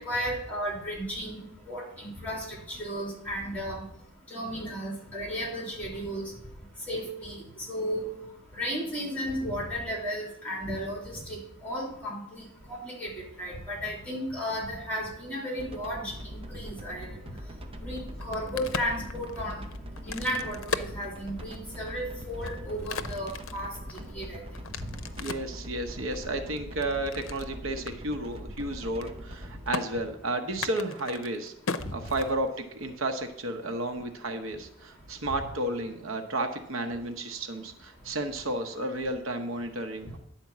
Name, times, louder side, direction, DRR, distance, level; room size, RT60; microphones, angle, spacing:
voice 1, 0.0-3.8 4.3-6.2 6.9-7.4 7.7-8.1 8.5-13.1 13.4-17.1 17.8-19.6 20.0-23.7 24.1-24.4 31.8-31.9, equal, 10° left, -2 dB, 3.1 m, -34 dB
sound 1, 15.6-29.7, equal, 30° right, 0.7 m, -42 dB
Crack, 18.1-21.7 22.2-25.6 26.1-27.5 27.9-28.0 28.2-28.6 28.9-29.4 29.7-29.8 30.5-32.7, left 5 dB, 80° left, 0.6 m, -37 dB
voice 2, 25.1-31.5 31.9-40.2, right 1 dB, 85° right, 7 dB, 0.9 m, -32 dB
10.5 x 4.4 x 7.2 m, 0.76 s
head